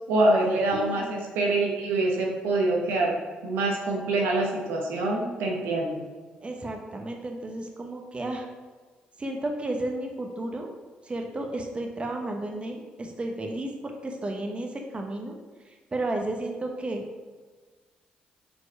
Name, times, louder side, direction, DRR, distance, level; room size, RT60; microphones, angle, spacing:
voice 1, 0.1-3.1 3.4-6.0, right 2 dB, 90° right, -1 dB, 1.1 m, -25 dB
voice 2, 0.7-1.1 6.4-8.5 9.2-10.7 11.0-15.4 15.6-17.0, right 2 dB, 30° right, 2 dB, 1.0 m, -33 dB
4.8 x 4.7 x 4.7 m, 1.4 s
supercardioid pair, 60°, 4 cm